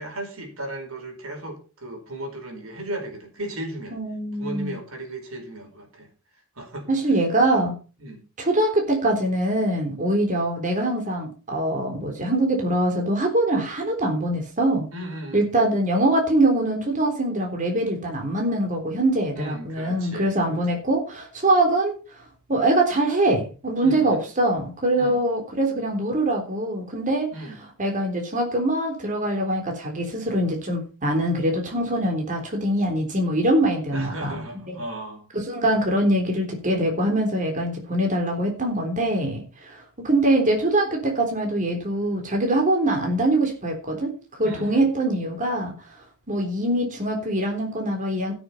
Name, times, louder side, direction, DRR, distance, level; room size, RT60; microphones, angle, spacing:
voice 1, 0.0-4.0 4.4-6.1 6.6-6.9 8.0-8.2 14.9-15.5 19.3-20.6 23.8-24.2 25.0-25.2 27.3-27.6 33.9-35.3 44.4-44.9, right 1 dB, 75° right, 4 dB, 4.7 m, -35 dB
voice 2, 3.9-4.8 6.9-7.7 8.4-14.9 15.3-21.9 22.5-27.3 27.8-34.4 34.7-34.8 35.3-44.1 44.4-45.7 46.3-48.3, right 1 dB, 40° right, 2 dB, 3.6 m, -23 dB
16.0 x 7.0 x 5.6 m, 0.35 s
head